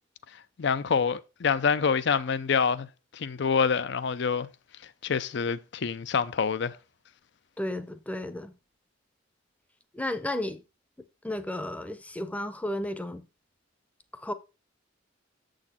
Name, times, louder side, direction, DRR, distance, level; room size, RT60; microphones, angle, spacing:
voice 1, 0.6-2.9 3.1-4.5 5.0-6.8, left 6 dB, 65° left, 0.5 m, -26 dB
voice 2, 7.6-8.5 9.9-10.6 11.2-13.2 14.2-14.3, left 1 dB, 10° left, 0.6 m, -33 dB
7.3 x 6.4 x 4.2 m
head